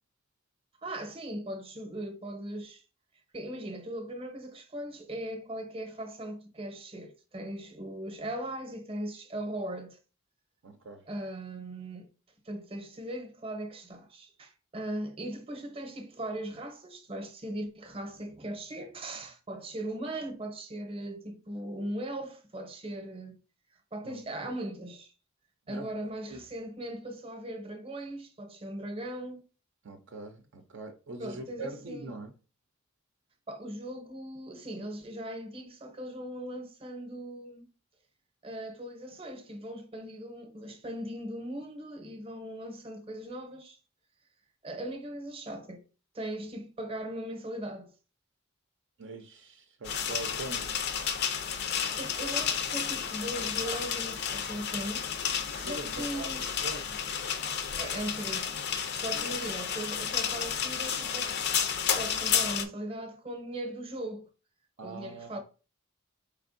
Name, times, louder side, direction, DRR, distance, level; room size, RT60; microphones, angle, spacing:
voice 1, 0.8-2.8 3.3-10.0 11.1-12.1 12.4-23.4 23.9-25.1 25.7-29.4 31.2-32.1 33.5-37.7 38.4-43.8 44.6-45.8 46.1-47.9 52.0-56.5 57.8-58.6 58.9-61.4 61.9-64.3 64.8-65.4, right 1 dB, 30° right, 0.7 m, -39 dB
voice 2, 10.6-11.0 24.0-24.5 25.7-25.9 26.3-26.4 29.8-32.3 49.0-50.7 55.6-56.9 59.1-59.3 64.8-65.4, right 2 dB, 60° right, 0.5 m, -43 dB
sound 1, 49.8-62.7, left 7 dB, 55° left, 0.5 m, -31 dB
4.3 x 3.4 x 2.5 m
head